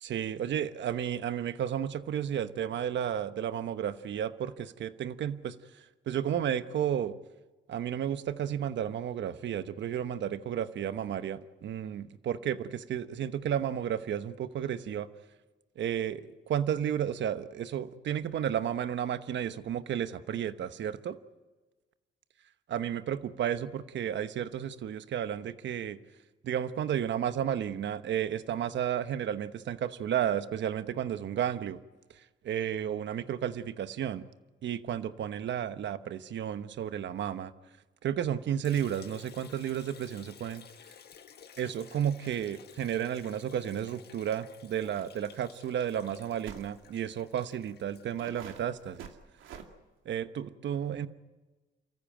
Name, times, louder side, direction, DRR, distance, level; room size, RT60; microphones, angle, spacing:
voice 1, 0.0-7.1 7.7-15.1 15.8-21.2 22.7-26.0 26.4-31.8 32.4-34.3 34.6-37.5 38.0-40.6 41.6-49.1 50.0-51.1, right 9 dB, 65° right, 11 dB, 1.1 m, -32 dB
Liquid, 38.6-48.7, left 7 dB, 55° left, 1.7 m, -54 dB
sound 1, 44.9-45.1 45.3-45.4 46.4-46.7 47.5-47.6 48.2-49.7, right 7 dB, 85° right, 2.3 m, -47 dB
29.5 x 14.5 x 9.0 m, 1.2 s
cardioid pair, 90°, 20 cm